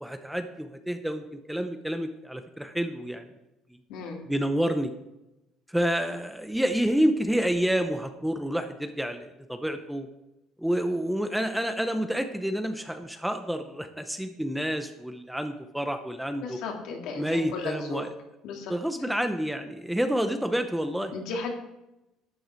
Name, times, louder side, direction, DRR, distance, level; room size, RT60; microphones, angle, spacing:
voice 1, 0.0-3.3 4.3-4.9 5.7-10.1 10.6-16.6 17.2-18.1 18.7-21.1, equal, ahead, 7 dB, 0.7 m, -29 dB
voice 2, 3.9-4.3 16.4-18.0 18.4-18.7 21.1-21.5, left 4 dB, 65° left, 2 dB, 2.4 m, -35 dB
12.0 x 9.2 x 4.5 m, 0.93 s
cardioid pair, 160°, 0 cm